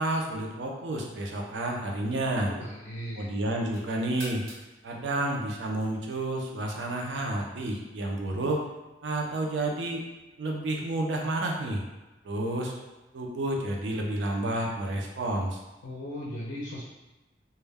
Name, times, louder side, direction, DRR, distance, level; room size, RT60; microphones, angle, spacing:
voice 1, 0.0-2.5 3.2-4.4 4.8-8.6 9.0-10.0 10.4-11.8 12.2-12.7 13.1-15.6, right 1 dB, 90° right, 0 dB, 0.5 m, -30 dB
voice 2, 2.4-3.3 15.8-16.8, equal, 80° left, -3 dB, 0.5 m, -37 dB
sound 1, 3.5-6.3, equal, 60° right, 1.1 m, -49 dB
2.2 x 2.1 x 3.3 m, 1.1 s
head